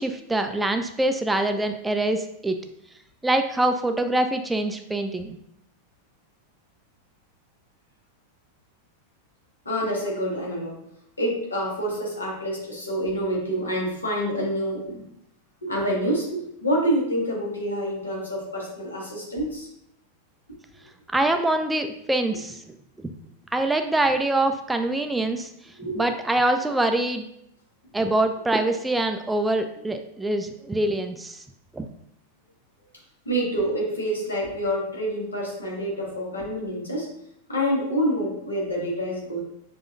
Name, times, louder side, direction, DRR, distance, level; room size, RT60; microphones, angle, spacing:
voice 1, 0.0-2.6 3.2-5.4 21.1-22.8 23.5-27.2 27.9-31.4 31.7-31.9, right 2 dB, 5° right, 6 dB, 0.3 m, -24 dB
voice 2, 9.6-10.8 11.2-15.0 15.6-19.7 25.8-26.1 33.2-37.1 37.5-39.4, equal, 75° left, -3 dB, 1.5 m, -27 dB
6.8 x 2.7 x 2.5 m, 0.77 s
figure-of-eight pair, 90°, 0 cm